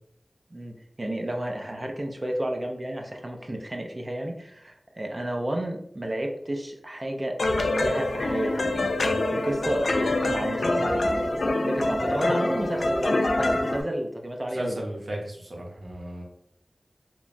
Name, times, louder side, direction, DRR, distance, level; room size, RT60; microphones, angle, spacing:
voice 1, 0.5-14.8, right 1 dB, 40° right, 2 dB, 0.5 m, -32 dB
sound 1, 7.4-13.8, left 2 dB, 80° left, 0.3 m, -25 dB
voice 2, 14.5-16.2, right 1 dB, 75° right, -1 dB, 0.7 m, -34 dB
2.8 x 2.2 x 2.5 m, 0.72 s
wide cardioid pair, 55°, 0 cm